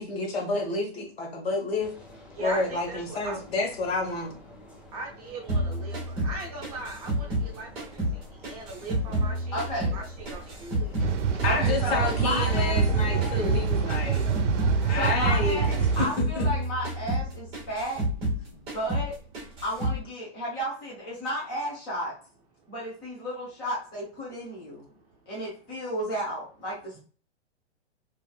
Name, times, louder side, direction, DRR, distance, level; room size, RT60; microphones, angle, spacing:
voice 1, 0.0-2.0 2.4-4.4 11.4-14.3 14.7-16.5, left 3 dB, 60° left, 1 dB, 1.1 m, -30 dB
sound 1, 1.8-16.2, left 2 dB, 25° left, 1.4 m, -46 dB
voice 2, 2.4-3.4 4.9-8.0 8.4-10.9, right 2 dB, 35° right, 0 dB, 0.6 m, -39 dB
sound 2, 5.5-8.2 8.4-11.1 11.4-14.8 15.0-15.4 15.7-18.4 18.7-19.1 19.3-20.0, right 1 dB, 15° right, 1.0 m, -29 dB
voice 3, 9.5-10.0 11.4-12.9 14.9-18.0 18.5-19.2 19.6-22.1 22.7-24.9 25.3-27.0, equal, 10° left, -6 dB, 0.5 m, -33 dB
sound 3, 11.0-16.1, right 6 dB, 90° right, 0.6 m, -26 dB
3.6 x 2.6 x 2.3 m, 0.39 s
hypercardioid pair, 170°, 35 cm